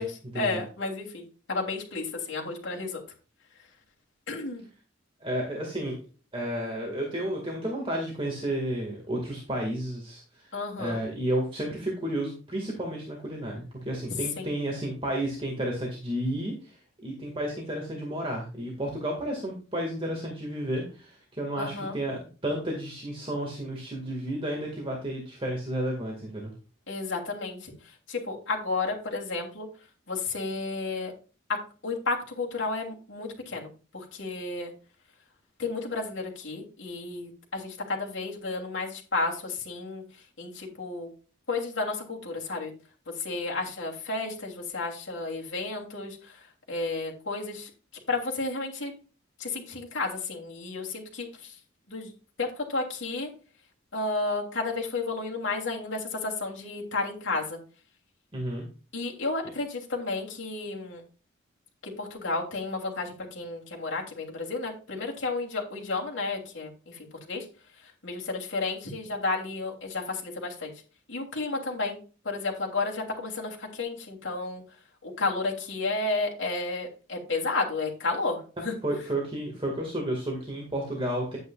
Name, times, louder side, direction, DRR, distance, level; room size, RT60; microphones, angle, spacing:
voice 1, 0.0-3.0 4.3-4.6 10.5-11.0 14.4-14.5 21.6-22.0 26.9-29.7 30.1-31.1 31.5-34.7 35.6-40.0 40.4-41.1 41.5-42.7 43.2-46.4 46.7-47.7 48.1-48.9 49.4-51.6 51.9-52.1 52.4-53.3 53.9-57.6 58.9-61.0 61.8-67.5 67.8-70.7 71.1-72.0 72.2-74.6 75.0-78.7, left 3 dB, 65° left, -1 dB, 3.1 m, -32 dB
voice 2, 5.2-6.0 6.3-26.5 58.3-58.7 78.8-81.4, right 1 dB, 25° right, -1 dB, 2.0 m, -32 dB
10.5 x 9.2 x 2.4 m, 0.36 s
head